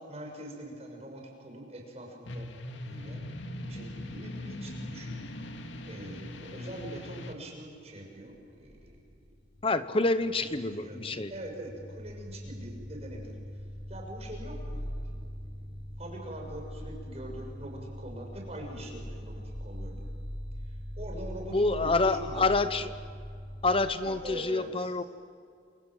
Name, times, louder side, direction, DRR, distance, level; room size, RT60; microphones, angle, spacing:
voice 1, 0.0-2.5 2.8-3.2 3.6-9.0 10.6-15.7 16.0-20.0 20.6-22.5 24.0-24.9, right 1 dB, 35° right, 1 dB, 6.5 m, -44 dB
sound 1, 2.2-7.3, left 1 dB, 80° left, 2.1 m, -40 dB
sound 2, 8.3-9.7 10.0-23.8, equal, 55° left, 7.9 m, -41 dB
voice 2, 9.6-11.3 21.5-22.9 23.6-25.0, left 3 dB, 30° left, 12 dB, 0.8 m, -27 dB
28.0 x 26.0 x 7.8 m, 2.3 s
head